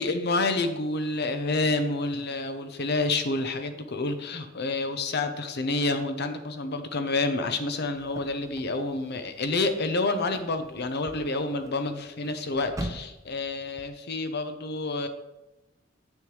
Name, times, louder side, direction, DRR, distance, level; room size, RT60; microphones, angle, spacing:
voice 1, 0.0-15.1, left 2 dB, 55° left, 8 dB, 0.7 m, -28 dB
sound 1, 7.9-13.8, right 1 dB, 15° right, 0.6 m, -43 dB
8.8 x 6.4 x 3.2 m, 0.97 s
head